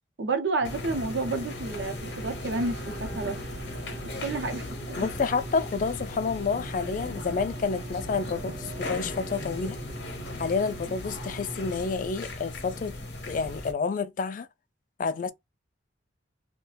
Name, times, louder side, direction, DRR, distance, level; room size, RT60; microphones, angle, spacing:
voice 1, 0.2-3.4 4.1-4.7 5.0-5.1, right 3 dB, 75° right, 0.6 m, -30 dB
sound 1, 0.6-13.7, left 2 dB, 65° left, 0.7 m, -38 dB
sound 2, 0.6-11.8, right 2 dB, 30° right, 0.4 m, -42 dB
sound 3, 1.2-10.3 11.0-11.1, right 3 dB, 55° right, 1.0 m, -49 dB
voice 2, 5.0-9.8 10.4-13.0 13.3-14.5 15.0-15.3, left 5 dB, 45° left, 0.3 m, -29 dB
2.3 x 2.1 x 3.2 m
head